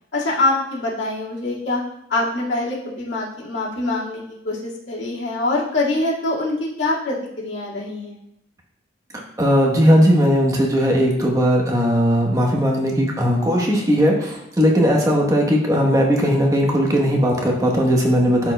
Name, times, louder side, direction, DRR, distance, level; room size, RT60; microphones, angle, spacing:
voice 1, 0.1-1.8 2.1-8.2, left 2 dB, 85° left, -6 dB, 2.0 m, -24 dB
voice 2, 9.4-18.5, equal, 20° right, 0 dB, 1.0 m, -18 dB
12.0 x 4.4 x 2.2 m, 0.79 s
head